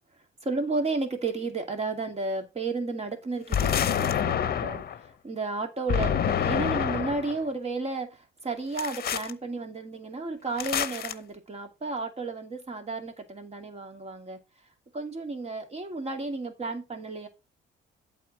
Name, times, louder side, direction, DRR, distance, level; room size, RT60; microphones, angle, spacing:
voice 1, 0.4-14.4 14.9-17.3, right 3 dB, 30° right, 2.3 m, -33 dB
sound 1, 3.5-5.0 5.9-7.4 8.8-9.3 10.6-11.1, left 9 dB, 50° left, 0.8 m, -27 dB
8.3 x 3.8 x 5.9 m
cardioid pair, 90°, 20 cm